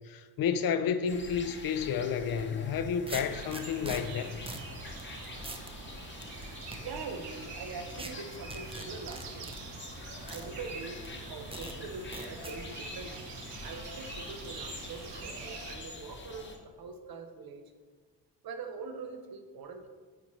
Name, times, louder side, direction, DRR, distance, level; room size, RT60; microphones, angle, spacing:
voice 1, 0.0-4.4, left 7 dB, 55° left, 0.5 m, -31 dB
sound 1, 1.1-16.6, left 3 dB, 25° left, 0.8 m, -46 dB
sound 2, 2.3-2.4 3.1-4.0 4.5-4.7 5.0-5.1 5.4-5.7 6.2-6.8 8.0-8.1 8.5-9.6 10.3-10.5 11.0-11.1 11.5-11.7 12.1-12.6, right 2 dB, 15° right, 0.5 m, -41 dB
sound 3, 3.3-15.8, right 4 dB, 80° right, 1.0 m, -45 dB
voice 2, 6.7-9.5 10.3-11.0 11.3-13.3 13.6-17.7 18.4-19.9, right 4 dB, 60° right, 0.8 m, -43 dB
9.2 x 4.2 x 3.1 m
cardioid pair, 110°, 42 cm